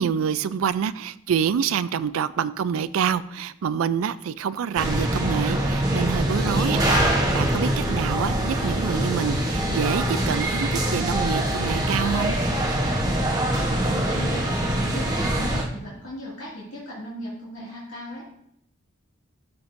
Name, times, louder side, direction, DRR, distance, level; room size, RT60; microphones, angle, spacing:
voice 1, 0.0-12.4, right 7 dB, 85° right, 15 dB, 0.4 m, -27 dB
sound 1, 4.7-15.6, right 1 dB, 20° right, 1.0 m, -24 dB
sound 2, 5.6-10.9, equal, 25° left, 2.7 m, -37 dB
voice 2, 13.5-18.4, left 1 dB, 75° left, -7 dB, 2.2 m, -37 dB
12.0 x 5.8 x 2.6 m, 0.73 s
head